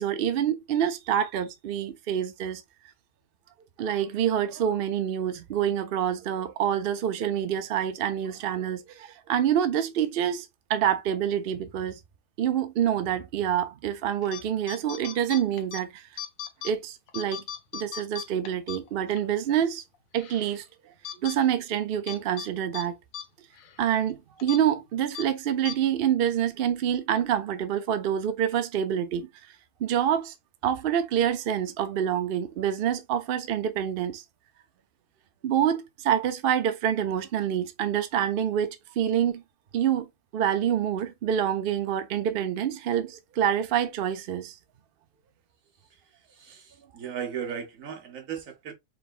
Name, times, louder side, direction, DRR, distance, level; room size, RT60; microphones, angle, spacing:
voice 1, 0.0-2.6 3.8-12.0 12.4-16.1 16.6-17.4 17.7-19.8 20.1-20.6 21.2-23.0 23.8-29.3 29.8-30.3 30.6-34.2 35.4-39.4 39.7-40.1 40.3-44.6, right 9 dB, 55° right, 0.7 m, -27 dB
sound 1, 14.2-14.4 14.7-15.8 16.2-16.7 17.1-19.2 19.6-19.7 20.2-20.6 21.0-21.4 22.1-22.5 22.7-22.8 23.1-23.2 23.6-23.7 24.4-24.6 25.1-25.3 25.6-25.8, left 8 dB, 90° left, 1.1 m, -38 dB
voice 2, 46.3-48.7, right 8 dB, 80° right, 1.4 m, -36 dB
4.8 x 3.3 x 2.4 m
omnidirectional pair, 1.4 m